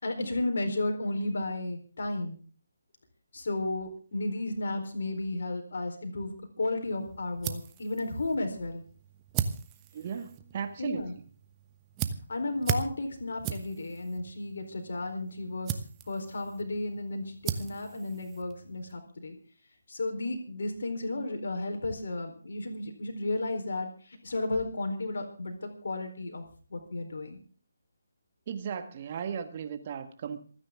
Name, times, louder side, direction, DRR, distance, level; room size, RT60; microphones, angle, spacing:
voice 1, 0.0-2.4 3.3-8.8 10.8-11.1 12.3-15.8 16.1-19.4 19.9-26.4 26.7-27.4, left 2 dB, 55° left, 4 dB, 4.2 m, -33 dB
sound 1, 6.8-19.0, right 9 dB, 20° right, 1.1 m, -38 dB
voice 2, 9.9-11.1 28.5-30.5, right 7 dB, 35° right, 8 dB, 1.7 m, -36 dB
27.0 x 10.0 x 3.7 m, 0.41 s
figure-of-eight pair, 145°, 0 cm